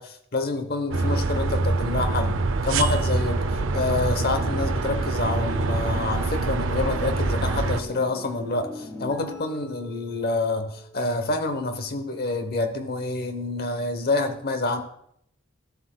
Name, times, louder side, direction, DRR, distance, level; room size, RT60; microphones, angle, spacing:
voice 1, 0.0-3.4 3.7-14.8, left 3 dB, 50° left, 8 dB, 0.9 m, -27 dB
sound 1, 0.9-7.8, right 3 dB, 65° right, 0.5 m, -25 dB
sound 2, 2.7-11.2, left 2 dB, 15° left, 1.1 m, -40 dB
13.0 x 7.5 x 2.2 m, 0.71 s
head